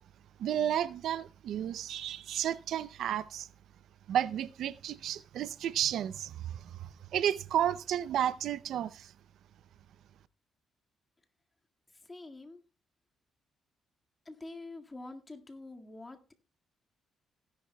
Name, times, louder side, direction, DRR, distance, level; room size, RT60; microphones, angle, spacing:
voice 1, 0.4-3.5 4.1-9.1, right 10 dB, 75° right, 0.5 m, -32 dB
voice 2, 11.9-12.6 14.3-16.3, left 2 dB, 20° left, 1.9 m, -46 dB
17.0 x 10.5 x 2.2 m
cardioid pair, 90°, 0 cm